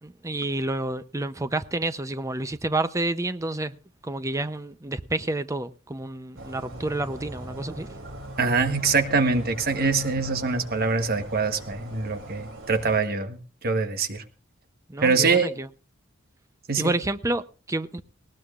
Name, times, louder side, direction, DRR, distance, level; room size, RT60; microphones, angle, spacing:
voice 1, 0.0-3.8 4.0-7.9 14.9-15.7 16.8-18.0, right 2 dB, 15° right, 0.6 m, -29 dB
sound 1, 6.3-13.0, right 1 dB, 80° right, 3.0 m, -40 dB
voice 2, 8.4-14.2 15.0-15.5 16.7-16.9, right 4 dB, 50° right, 1.2 m, -24 dB
19.5 x 18.0 x 2.4 m
head